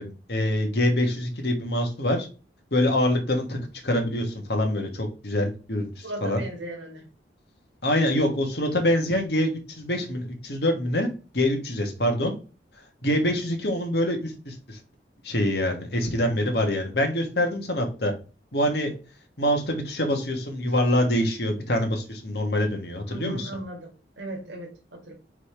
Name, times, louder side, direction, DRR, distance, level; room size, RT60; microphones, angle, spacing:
voice 1, 0.0-2.3 2.7-3.6 3.8-6.4 7.8-11.1 11.3-12.3 13.0-14.8 15.2-18.1 18.5-18.9 19.4-23.5, left 1 dB, 65° left, 3 dB, 1.8 m, -25 dB
voice 2, 6.0-7.1 23.0-25.1, right 2 dB, 85° right, 2 dB, 1.9 m, -37 dB
5.0 x 4.1 x 5.0 m, 0.34 s
head